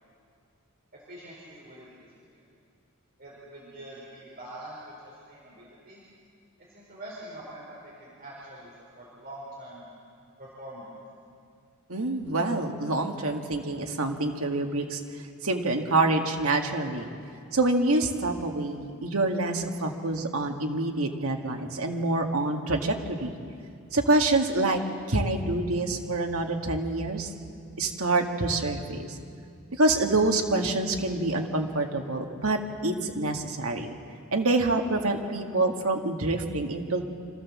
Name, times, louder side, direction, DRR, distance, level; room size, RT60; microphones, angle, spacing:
voice 1, 0.9-1.9 2.3-2.4 3.2-4.9 5.3-6.0 6.7-9.8 10.4-10.9, right 1 dB, 45° right, -6 dB, 4.4 m, -44 dB
voice 2, 11.9-15.0 15.4-17.1 17.5-23.3 23.9-24.8 25.1-27.3 27.8-29.2 29.8-34.0 34.3-37.0, right 2 dB, 80° right, 3 dB, 1.9 m, -26 dB
26.5 x 14.5 x 7.4 m, 2.3 s
head